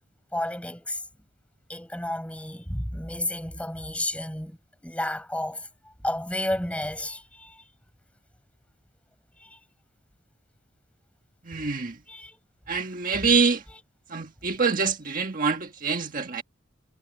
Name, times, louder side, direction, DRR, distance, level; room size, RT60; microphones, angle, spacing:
voice 1, 0.3-1.0 1.7-4.6 4.8-5.7 6.0-7.6 9.4-9.6 12.1-12.3, left 1 dB, 5° left, 5.8 m, -31 dB
voice 2, 11.4-12.0 12.7-13.6 14.1-16.4, right 5 dB, 40° right, 1.5 m, -25 dB
head